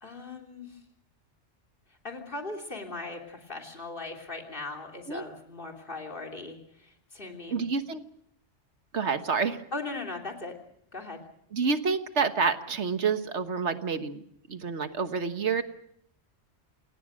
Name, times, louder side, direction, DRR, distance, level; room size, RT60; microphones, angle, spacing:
voice 1, 0.0-0.8 2.0-7.6 9.7-10.5 10.9-11.2, left 3 dB, 45° left, 2 dB, 3.4 m, -39 dB
voice 2, 7.5-8.0 8.9-9.6 11.5-14.2 14.5-15.6, right 5 dB, 75° right, 9 dB, 1.6 m, -28 dB
27.5 x 18.5 x 6.4 m, 0.70 s
omnidirectional pair, 1.2 m